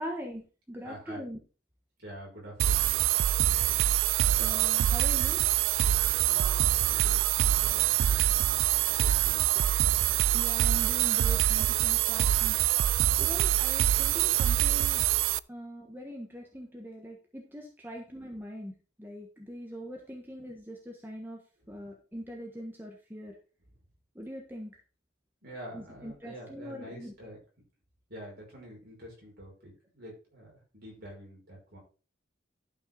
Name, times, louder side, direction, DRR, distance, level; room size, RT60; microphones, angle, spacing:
voice 1, 0.0-1.4 4.4-5.4 8.1-8.2 10.3-12.6 13.2-15.1 15.5-18.7 19.0-21.4 21.7-23.4 24.1-24.8 25.7-27.1, equal, 10° right, 1 dB, 1.4 m, -42 dB
voice 2, 0.8-1.3 2.0-3.1 6.3-9.5 25.4-27.4 28.1-31.8, equal, 55° right, -2 dB, 5.7 m, -47 dB
sound 1, 2.6-15.4, right 13 dB, 85° right, 0.3 m, -25 dB
11.5 x 5.7 x 3.9 m, 0.35 s
head